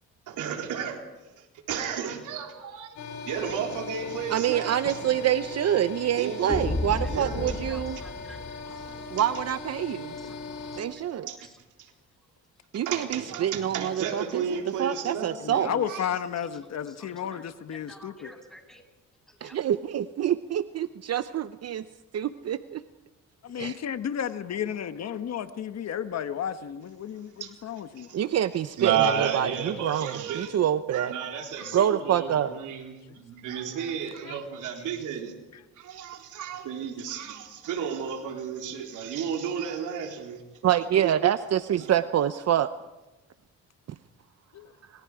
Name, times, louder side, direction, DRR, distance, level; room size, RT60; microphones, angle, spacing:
voice 1, 0.3-1.0 1.4-2.9 3.2-5.0 6.2-6.6 7.1-7.5 9.0-9.1 11.2-11.4 11.8-11.9 12.9-15.4 15.9-16.0 27.4-27.5 28.0-28.2 28.8-30.6 30.9-35.3 35.8-40.4 41.8-41.9, right 7 dB, 85° right, 3.8 m, -32 dB
sound 1, 3.0-10.8, left 4 dB, 80° left, 4.7 m, -39 dB
voice 2, 4.3-8.0 9.1-10.1 10.8-11.3 12.7-15.7 19.4-21.8 22.1-22.8 23.6-23.8 28.1-31.1 31.7-32.5 40.6-42.7, right 10 dB, 55° right, 0.8 m, -26 dB
sound 2, 6.5-9.1, left 2 dB, 20° left, 2.2 m, -33 dB
voice 3, 7.7-9.0 10.2-10.3 10.7-11.1 11.4-11.5 16.9-17.4 17.9-18.8 19.3-19.6, equal, ahead, 7.1 m, -51 dB
voice 4, 15.4-18.3 23.4-28.1 30.6-30.7 31.6-31.8 33.1-33.2 34.2-34.9 35.5-35.6 44.5-44.7, left 9 dB, 60° left, 1.4 m, -33 dB
29.0 x 26.0 x 5.0 m
cardioid pair, 90°, 30 cm